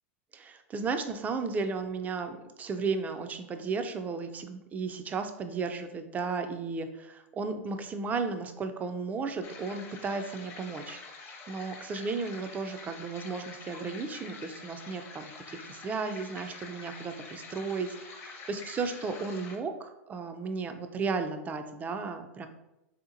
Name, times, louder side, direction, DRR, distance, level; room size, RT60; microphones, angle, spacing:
voice 1, 0.3-22.5, right 4 dB, 20° right, 8 dB, 0.3 m, -34 dB
sound 1, 9.4-19.6, left 4 dB, 35° left, 0.6 m, -47 dB
3.5 x 2.8 x 2.5 m, 0.93 s
hypercardioid pair, 105°, 8 cm